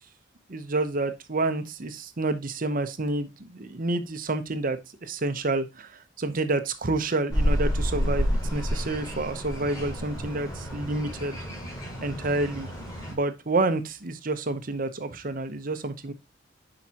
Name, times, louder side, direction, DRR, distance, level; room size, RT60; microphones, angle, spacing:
voice 1, 0.5-11.4 12.0-12.7 13.1-16.1, right 2 dB, 45° right, 10 dB, 0.8 m, -29 dB
sound 1, 7.3-13.1, equal, 20° left, 4.7 m, -29 dB
10.5 x 4.9 x 2.9 m, 0.24 s
head